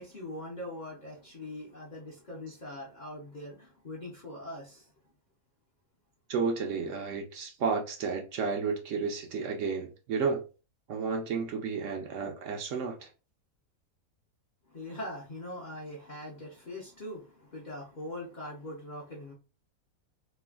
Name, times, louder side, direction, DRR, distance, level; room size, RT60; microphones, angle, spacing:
voice 1, 0.0-4.8 14.7-19.3, left 1 dB, 45° left, 0.6 m, -42 dB
voice 2, 6.3-10.4 10.9-13.1, right 5 dB, 65° right, 0.9 m, -32 dB
3.2 x 2.1 x 2.3 m
omnidirectional pair, 1.5 m